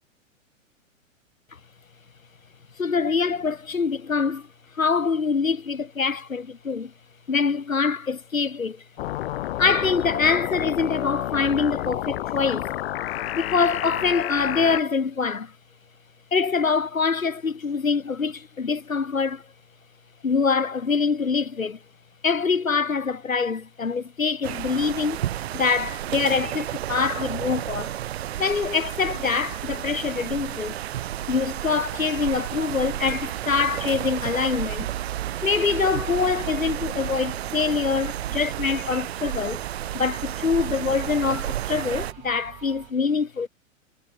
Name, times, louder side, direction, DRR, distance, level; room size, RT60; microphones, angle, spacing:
voice 1, 2.8-4.5 4.7-6.9 7.3-8.8 9.6-12.7 13.3-15.5 16.3-19.4 20.2-21.8 22.2-25.2 25.5-27.9 28.4-30.8 31.3-34.9 35.4-39.6 39.9-43.5, left 5 dB, 85° left, 1.3 m, -24 dB
sound 1, 9.0-14.8, left 14 dB, 50° left, 1.3 m, -30 dB
sound 2, 24.4-42.1, right 12 dB, 50° right, 0.8 m, -32 dB
sound 3, 31.6-42.9, right 40 dB or more, 35° right, 3.7 m, -47 dB
figure-of-eight pair, 105°, 40 cm